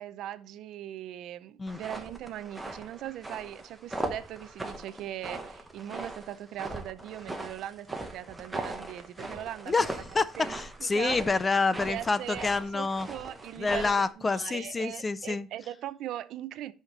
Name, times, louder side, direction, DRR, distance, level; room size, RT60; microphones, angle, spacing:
voice 1, 0.0-9.7 10.2-11.2 11.8-16.7, right 12 dB, 60° right, 0.5 m, -40 dB
sound 1, 1.7-14.1, right 2 dB, 5° right, 0.9 m, -40 dB
voice 2, 9.7-13.1 13.6-15.5, left 4 dB, 15° left, 0.3 m, -28 dB
9.8 x 5.7 x 3.2 m
cardioid pair, 165°, 0 cm